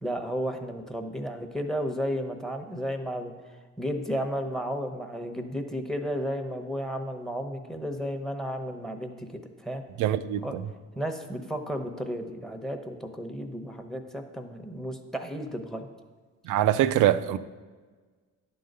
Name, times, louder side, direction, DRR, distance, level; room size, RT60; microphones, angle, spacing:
voice 1, 0.0-3.3 3.8-9.8 10.4-10.6 11.0-15.9, equal, ahead, 0.9 m, -33 dB
voice 2, 10.0-10.6 16.5-17.4, right 12 dB, 80° right, 0.5 m, -23 dB
10.0 x 3.9 x 6.6 m
cardioid pair, 90°, 30 cm